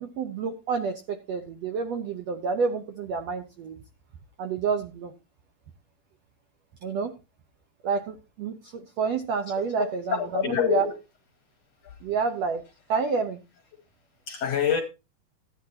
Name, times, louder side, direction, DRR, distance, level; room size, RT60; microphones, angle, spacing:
voice 1, 0.0-3.8 4.4-5.1 6.8-7.2 7.8-10.9 12.0-12.6 12.9-13.4, right 5 dB, 75° right, 1.5 m, -29 dB
voice 2, 10.1-10.9 11.8-12.0 14.3-14.8, left 8 dB, 65° left, 1.7 m, -26 dB
14.5 x 10.5 x 2.8 m
omnidirectional pair, 4.1 m